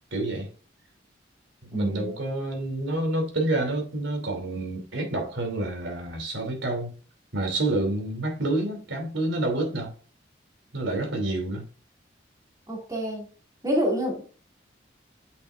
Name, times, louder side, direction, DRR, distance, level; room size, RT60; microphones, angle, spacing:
voice 1, 0.1-0.5 1.7-6.9 7.3-9.9 10.7-11.6, right 2 dB, 85° right, 2.9 m, -28 dB
voice 2, 1.7-2.1 12.7-13.2 13.6-14.3, equal, 20° right, 2.4 m, -27 dB
8.5 x 6.1 x 2.5 m
head